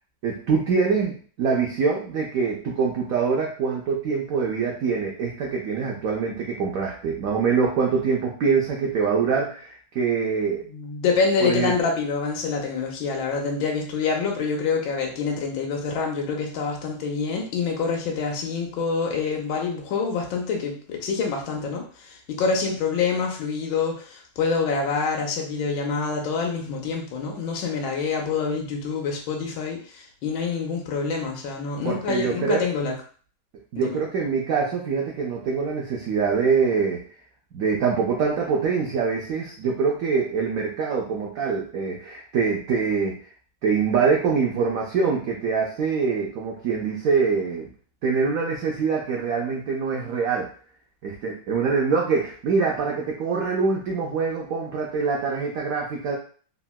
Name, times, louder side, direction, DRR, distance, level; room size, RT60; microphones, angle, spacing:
voice 1, 0.2-10.6 11.4-11.7 31.8-32.6 33.7-37.0 37.5-43.1 43.6-47.7 48.0-50.5 51.0-56.2, right 5 dB, 85° right, -1 dB, 0.7 m, -24 dB
voice 2, 10.7-33.0 33.8-34.0, left 5 dB, 80° left, 0 dB, 1.3 m, -26 dB
3.6 x 2.1 x 2.2 m, 0.43 s
omnidirectional pair, 2.0 m